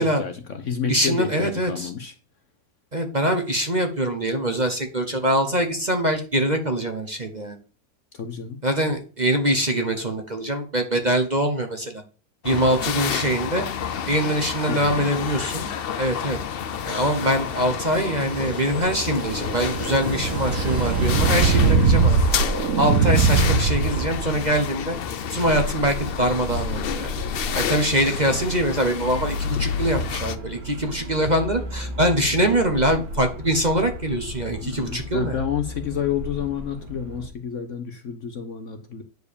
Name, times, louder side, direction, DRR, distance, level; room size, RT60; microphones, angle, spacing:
voice 1, 0.0-2.1 8.1-8.6 14.7-15.1 34.6-39.0, left 7 dB, 55° left, 8 dB, 1.1 m, -30 dB
voice 2, 0.9-1.9 2.9-7.6 8.6-12.0 12.4-13.6 14.1-15.7 16.0-16.4 16.8-22.2 22.8-25.0 25.3-27.1 27.5-35.4, right 1 dB, 30° right, 5 dB, 1.1 m, -23 dB
sound 1, 12.4-30.4, left 8 dB, 85° left, 0.5 m, -30 dB
sound 2, 18.1-24.4, right 4 dB, 55° right, 1.2 m, -21 dB
sound 3, 25.3-37.3, left 2 dB, 70° right, 2.5 m, -34 dB
9.7 x 4.7 x 6.8 m, 0.37 s
omnidirectional pair, 1.8 m